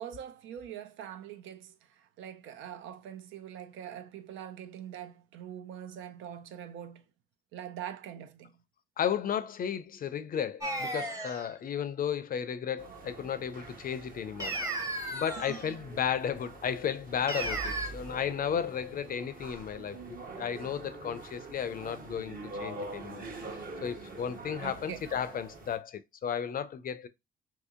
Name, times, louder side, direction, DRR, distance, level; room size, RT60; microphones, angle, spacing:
voice 1, 0.0-7.0 7.5-8.5 15.5-15.9 24.6-25.0, right 9 dB, 80° right, 0.5 m, -43 dB
voice 2, 9.0-14.5 15.1-23.3 23.8-27.1, left 8 dB, 45° left, 0.5 m, -34 dB
sound 1, 10.6-11.5 14.4-15.7 17.3-17.9, right 1 dB, 15° right, 0.8 m, -34 dB
sound 2, 12.8-25.8, right 3 dB, 45° right, 1.0 m, -45 dB
2.9 x 2.7 x 3.6 m
cardioid pair, 90°, 20 cm